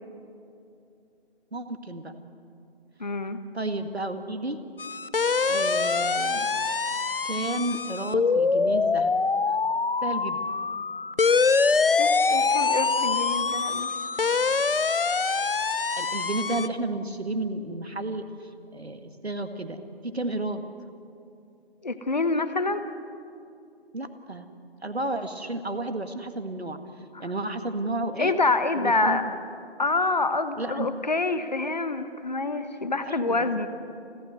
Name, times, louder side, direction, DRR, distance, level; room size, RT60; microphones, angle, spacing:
voice 1, 1.5-2.1 3.5-4.6 5.5-6.5 7.2-9.1 9.5-9.6 10.0-10.4 15.9-19.8 20.1-20.6 23.9-24.5 24.8-26.8 27.2-28.3 28.8-29.3 30.6-30.9 33.1-33.6, right 2 dB, 80° right, 8 dB, 1.9 m, -32 dB
voice 2, 3.0-3.4 12.0-13.9 21.8-22.8 27.1-27.3 28.2-29.2 29.8-33.7, left 3 dB, 45° left, 10 dB, 1.2 m, -26 dB
sound 1, 4.8-16.7, left 4 dB, 60° left, 0.7 m, -24 dB
30.0 x 12.5 x 7.9 m, 2.6 s
figure-of-eight pair, 160°, 31 cm